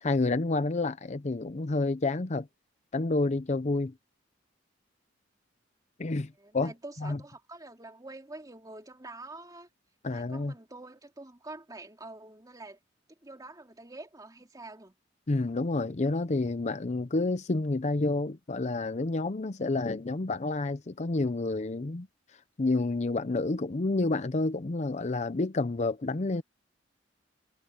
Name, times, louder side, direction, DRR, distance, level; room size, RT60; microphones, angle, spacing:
voice 1, 0.0-2.5 2.9-3.9 6.0-6.7 7.0-7.2 10.0-10.5 15.3-22.1 22.6-26.4, left 2 dB, 40° left, 0.6 m, -29 dB
voice 2, 6.4-9.7 10.1-12.8 13.1-15.0, right 2 dB, 20° right, 2.9 m, -46 dB
head